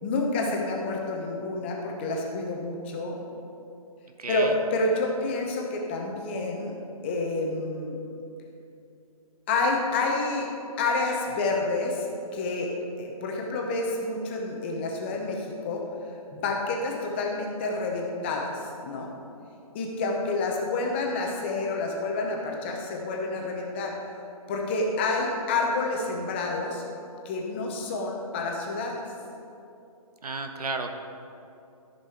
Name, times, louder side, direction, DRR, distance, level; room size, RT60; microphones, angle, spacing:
voice 1, 0.0-3.2 4.3-6.7 7.0-8.0 9.5-10.5 10.8-12.1 12.3-12.7 13.0-15.8 16.3-19.1 19.7-24.0 24.5-26.8 27.2-29.1, left 3 dB, 20° left, 0 dB, 0.8 m, -28 dB
voice 2, 4.2-4.5 30.2-31.0, right 3 dB, 80° right, 6 dB, 1.1 m, -32 dB
13.0 x 5.4 x 4.5 m, 2.7 s
hypercardioid pair, 165°, 19 cm